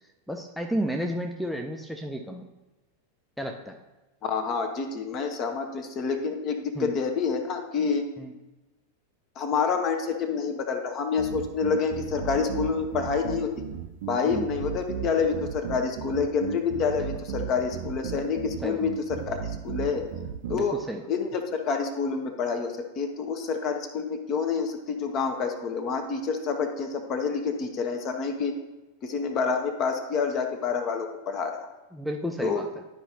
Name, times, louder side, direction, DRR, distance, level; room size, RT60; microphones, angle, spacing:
voice 1, 0.3-2.5 3.4-3.8 6.7-6.9 8.2-8.3 14.2-14.4 17.0-17.1 18.6-18.8 20.5-21.0 31.9-32.7, equal, ahead, 1 dB, 0.5 m, -32 dB
voice 2, 4.2-8.0 9.4-13.5 14.1-20.1 20.5-20.8 21.1-28.5 29.0-31.7 32.4-32.6, left 5 dB, 35° left, 6 dB, 0.9 m, -28 dB
sound 1, 11.2-20.6, right 9 dB, 55° right, 0.5 m, -35 dB
11.5 x 4.9 x 2.7 m, 1.1 s
figure-of-eight pair, 90°, 0 cm